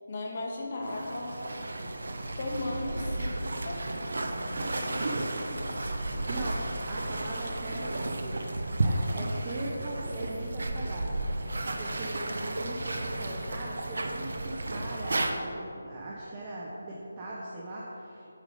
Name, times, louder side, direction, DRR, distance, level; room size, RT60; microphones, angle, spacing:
voice 1, 0.1-1.5 2.4-3.8 4.5-5.7, left 2 dB, 45° left, -1 dB, 1.5 m, -37 dB
sound 1, 0.8-15.3, right 2 dB, 65° right, 0.7 m, -33 dB
voice 2, 6.3-6.6 6.9-18.3, right 1 dB, 25° right, -6 dB, 0.9 m, -40 dB
8.8 x 4.9 x 5.3 m, 2.8 s
figure-of-eight pair, 160°, 0 cm